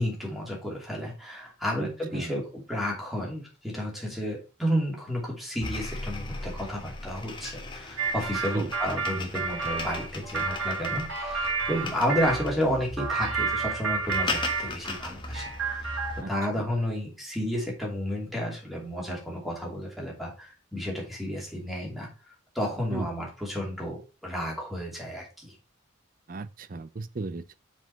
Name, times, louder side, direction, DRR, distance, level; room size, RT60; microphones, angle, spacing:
voice 1, 0.0-15.4 15.7-25.5, equal, ahead, 2.7 m, -32 dB
voice 2, 1.8-2.4 8.3-8.7 16.2-16.3 22.9-23.1 26.3-27.6, right 3 dB, 40° right, 0.5 m, -36 dB
sound 1, 5.6-16.2, left 2 dB, 20° left, 1.1 m, -38 dB
sound 2, 8.0-12.4 13.0-15.1 15.3-16.3, right 4 dB, 65° right, 3.0 m, -30 dB
5.8 x 5.1 x 5.6 m
head